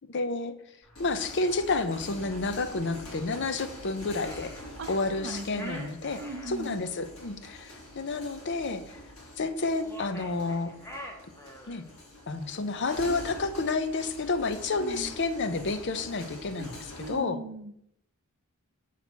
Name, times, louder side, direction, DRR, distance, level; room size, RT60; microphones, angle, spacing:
voice 1, 0.1-0.5 1.0-4.5 4.9-6.2 6.5-9.0 9.4-10.7 11.7-11.8 12.3-17.4, left 3 dB, 55° left, 11 dB, 0.6 m, -30 dB
sound 1, 0.8-17.2, left 1 dB, 75° left, 2.6 m, -45 dB
sound 2, 4.1-6.5 9.7-11.9, left 1 dB, 10° left, 1.0 m, -45 dB
voice 2, 5.2-5.9 6.2-6.8 14.8-15.2 16.6-16.7 17.0-17.7, right 2 dB, 55° right, 9 dB, 0.6 m, -38 dB
7.2 x 4.2 x 6.1 m, 0.76 s
head